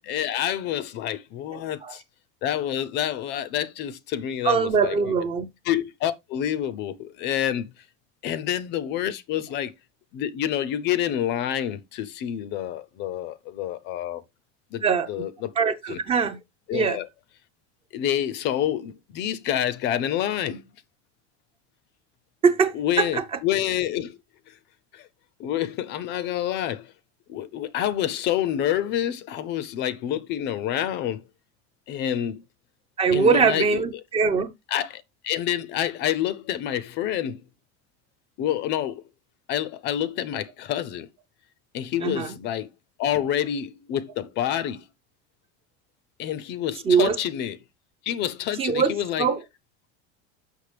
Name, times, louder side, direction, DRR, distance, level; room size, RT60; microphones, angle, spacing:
voice 1, 0.0-2.0 2.4-4.9 5.7-7.8 8.2-9.7 10.1-14.2 14.7-15.5 15.9-16.0 16.7-17.1 17.9-20.6 22.7-24.2 24.5-24.6 24.9-25.1 25.4-26.9 27.3-31.2 31.9-32.4 33.1-33.8 34.7-37.4 38.4-39.0 39.5-41.1 41.7-42.7 43.0-44.8 46.2-47.6 48.0-49.3, left 11 dB, 35° left, 0.5 m, -28 dB
voice 2, 1.5-2.0 4.4-5.5 14.8-15.1 15.6-16.4 16.7-17.0 22.4-23.2 33.0-34.5 42.0-42.3 46.8-47.2 48.6-49.4, right 5 dB, 20° right, 0.5 m, -22 dB
6.6 x 6.2 x 3.3 m
cardioid pair, 175°, 32 cm